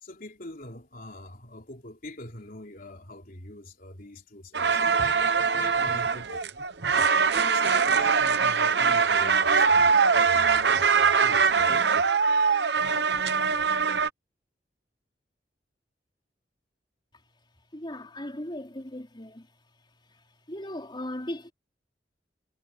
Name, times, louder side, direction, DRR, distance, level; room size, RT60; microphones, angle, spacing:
voice 1, 0.0-5.2 5.5-6.5 6.9-10.0 10.2-12.1, left 1 dB, 55° left, 3.6 m, -44 dB
sound 1, 4.5-14.1, right 5 dB, 70° right, 1.0 m, -22 dB
voice 2, 17.7-19.5 20.1-20.2 20.5-21.5, left 1 dB, 25° left, 3.7 m, -37 dB
head